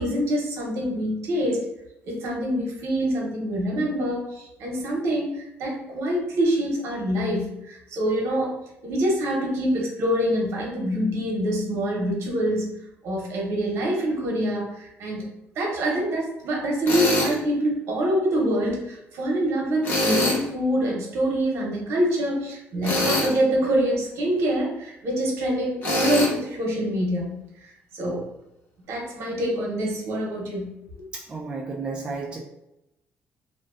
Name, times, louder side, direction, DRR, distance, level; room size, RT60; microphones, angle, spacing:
voice 1, 0.0-1.6 2.0-8.5 8.8-15.3 15.6-28.3 28.9-30.7 30.9-31.1, equal, 65° right, -1 dB, 0.7 m, -25 dB
Tools, 16.9-17.3 19.8-20.4 22.8-23.4 25.8-26.3, left 1 dB, 45° left, 0.7 m, -23 dB
voice 2, 31.1-32.4, right 4 dB, 20° right, -3 dB, 0.3 m, -32 dB
2.4 x 2.2 x 2.3 m, 0.87 s
cardioid pair, 135°, 5 cm